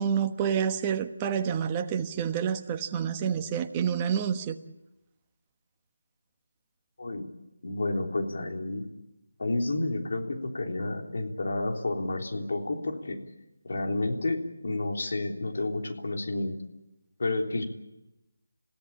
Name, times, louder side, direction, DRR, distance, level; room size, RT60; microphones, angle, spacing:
voice 1, 0.0-4.6, right 8 dB, 20° right, 6 dB, 1.3 m, -28 dB
voice 2, 7.0-7.3 7.6-8.8 9.4-13.2 13.6-16.6 17.2-17.6, left 2 dB, 60° left, 3 dB, 3.5 m, -30 dB
28.0 x 16.5 x 8.7 m, 0.94 s
figure-of-eight pair, 165°, 0 cm